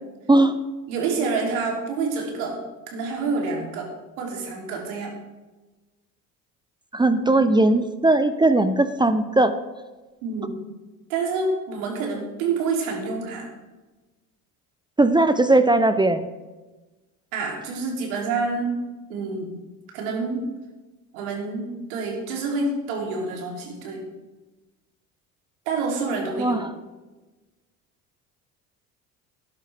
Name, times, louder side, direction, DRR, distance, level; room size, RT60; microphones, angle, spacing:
voice 1, 0.9-3.9 4.2-5.1 10.2-10.6 11.1-13.5 17.3-18.7 19.1-19.5 19.9-20.5 21.1-24.0 25.7-26.6, right 4 dB, 70° right, 0 dB, 3.1 m, -27 dB
voice 2, 6.9-9.5 15.0-16.3 26.4-26.7, right 2 dB, 10° right, 10 dB, 0.6 m, -19 dB
13.0 x 10.5 x 3.4 m, 1.2 s
hypercardioid pair, 65°, 44 cm